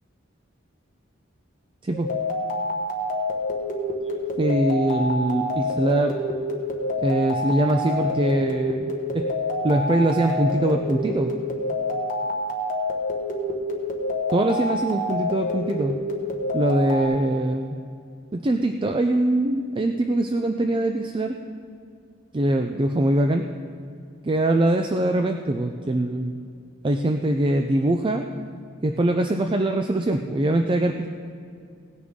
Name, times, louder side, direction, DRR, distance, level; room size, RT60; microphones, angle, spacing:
sound 1, 1.9-17.1, left 1 dB, 40° left, 1.4 m, -27 dB
voice 1, 4.4-6.1 7.0-9.2 9.6-11.3 14.3-15.9 16.5-17.8 18.3-21.3 22.3-23.4 24.2-26.4 26.8-28.2 28.8-31.1, right 1 dB, 25° right, 5 dB, 0.4 m, -22 dB
17.5 x 9.8 x 3.7 m, 2.3 s
head